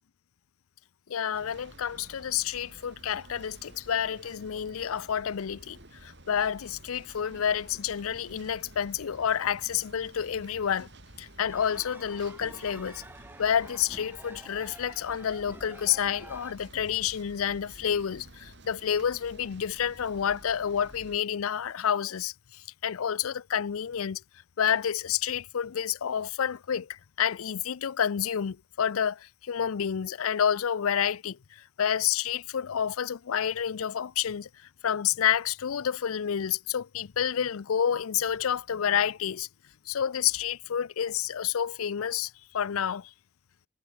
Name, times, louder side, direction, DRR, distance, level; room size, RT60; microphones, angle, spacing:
voice 1, 1.1-10.9 11.2-13.0 13.4-24.2 24.6-34.5 34.8-39.5 39.9-43.1, left 8 dB, 80° left, 0.5 m, -29 dB
sound 1, 1.3-21.2, right 1 dB, 55° right, 6.3 m, -51 dB
sound 2, 11.5-16.5, right 2 dB, 10° right, 1.0 m, -49 dB
head